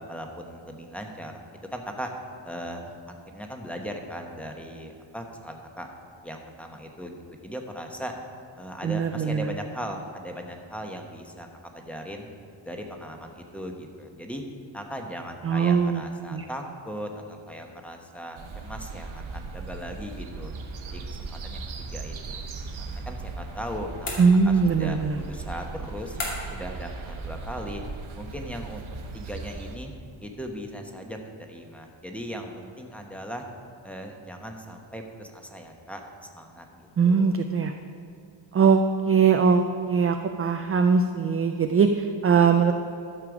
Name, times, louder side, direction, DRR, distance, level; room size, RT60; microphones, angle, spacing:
voice 1, 0.1-2.1 2.4-3.0 3.3-5.9 6.2-7.2 7.4-8.1 8.6-11.5 11.7-12.3 12.6-14.4 14.7-20.5 20.9-22.4 22.9-26.2 26.5-27.8 28.2-28.8 29.1-29.9 30.2-31.2 31.5-33.4 33.8-36.0 36.3-37.4, equal, 5° left, 2 dB, 1.0 m, -38 dB
voice 2, 8.8-9.5 15.4-16.0 16.3-16.5 24.2-25.2 37.0-37.7 38.5-38.8 39.1-42.7, right 5 dB, 30° right, 6 dB, 0.3 m, -21 dB
sound 1, 18.4-29.8, right 4 dB, 75° right, 1.2 m, -38 dB
sound 2, 24.0-24.8 26.2-26.7, left 2 dB, 75° left, 2.5 m, -34 dB
13.0 x 6.7 x 4.9 m, 2.5 s
wide cardioid pair, 120°, 48 cm